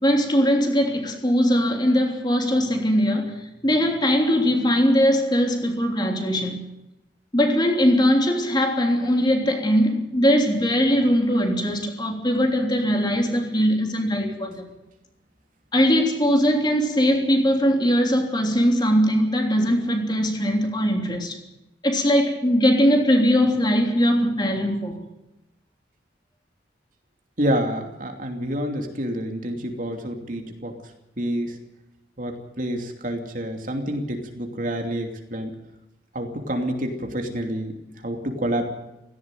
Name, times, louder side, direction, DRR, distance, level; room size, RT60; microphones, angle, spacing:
voice 1, 0.0-3.3 3.6-6.6 7.3-14.7 15.7-21.3 21.8-25.0, equal, 25° left, 3.4 m, -20 dB
voice 2, 27.4-30.7 31.2-31.6 32.2-35.5 36.1-37.7 38.0-38.7, equal, 45° right, 2.8 m, -28 dB
17.5 x 16.0 x 9.2 m
head